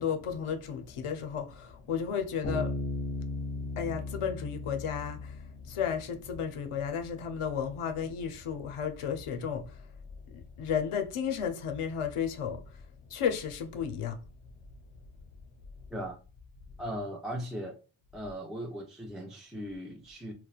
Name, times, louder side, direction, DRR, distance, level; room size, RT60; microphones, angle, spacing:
voice 1, 0.0-2.7 3.7-9.7 10.3-12.6 13.1-14.2, left 7 dB, 85° left, 0.6 m, -33 dB
Bass guitar, 2.4-6.1, left 2 dB, 20° left, 0.8 m, -36 dB
voice 2, 16.8-17.8 18.1-20.3, equal, ahead, 0.3 m, -38 dB
2.9 x 2.1 x 2.3 m
wide cardioid pair, 65°, 49 cm